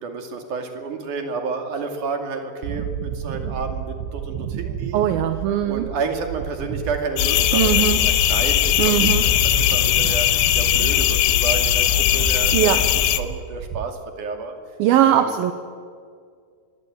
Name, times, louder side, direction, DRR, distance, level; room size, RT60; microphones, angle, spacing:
voice 1, 0.0-5.2 5.7-7.9 8.3-12.8 13.2-14.5 15.0-15.4, right 4 dB, 50° right, 5 dB, 3.5 m, -30 dB
sound 1, 2.6-13.9, right 9 dB, 90° right, 3.2 m, -32 dB
voice 2, 4.9-5.9 7.5-8.0 8.8-9.3 12.5-12.8 14.8-15.5, right 11 dB, 70° right, 9 dB, 2.4 m, -20 dB
sound 2, 7.2-13.2, left 13 dB, 80° left, 3.0 m, -19 dB
26.0 x 21.5 x 8.9 m, 2.1 s
omnidirectional pair, 5.1 m